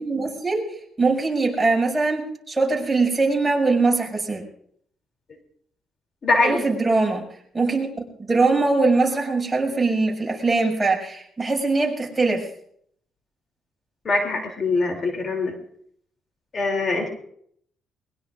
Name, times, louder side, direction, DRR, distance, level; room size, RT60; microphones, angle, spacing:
voice 1, 0.0-4.4 6.4-7.2 7.5-7.9 8.2-12.5, right 3 dB, 15° right, -1 dB, 6.2 m, -22 dB
voice 2, 6.2-6.6 14.0-15.5 16.5-17.1, left 3 dB, 45° left, 3 dB, 3.0 m, -22 dB
22.0 x 21.5 x 2.5 m, 0.66 s
cardioid pair, 90°, 0 cm